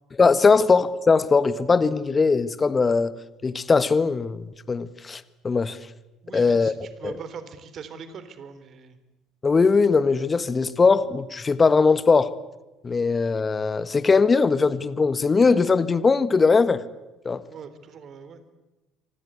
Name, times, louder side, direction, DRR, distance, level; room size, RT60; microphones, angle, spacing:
voice 1, 0.2-3.1 3.4-5.8 6.3-6.7 7.0-7.1 9.4-12.3 12.8-16.8 17.2-17.4, left 4 dB, 25° left, 15 dB, 1.6 m, -20 dB
voice 2, 6.2-9.0 17.5-18.4, right 6 dB, 45° right, 11 dB, 3.6 m, -41 dB
27.0 x 25.0 x 8.4 m, 1.1 s
figure-of-eight pair, 60°, 0 cm